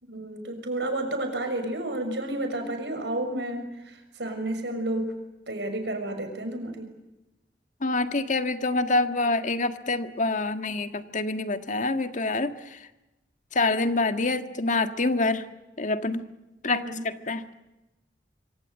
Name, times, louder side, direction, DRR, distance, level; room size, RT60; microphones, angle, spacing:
voice 1, 0.0-5.1 5.5-6.9 16.7-17.0, right 1 dB, 75° right, 6 dB, 6.5 m, -31 dB
voice 2, 7.8-12.9 13.5-15.4 15.8-16.2 16.6-17.4, left 2 dB, 45° left, 9 dB, 1.7 m, -26 dB
25.5 x 25.5 x 8.2 m, 0.99 s
head